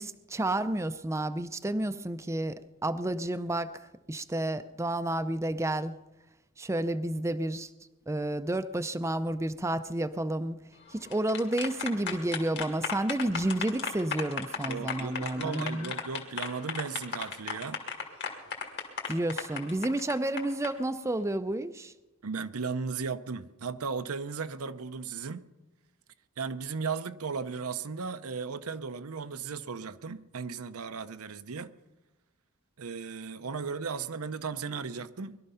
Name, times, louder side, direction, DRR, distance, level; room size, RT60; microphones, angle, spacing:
voice 1, 0.0-3.7 4.1-6.0 6.6-7.7 8.1-10.6 10.9-15.9 19.1-21.9, right 1 dB, 15° right, 0.5 m, -31 dB
sound 1, 10.9-20.7, left 6 dB, 55° left, 2.3 m, -35 dB
voice 2, 14.6-17.8 22.2-25.5 26.4-31.7 32.8-35.4, right 5 dB, 85° right, 0.7 m, -36 dB
21.0 x 12.5 x 5.6 m
head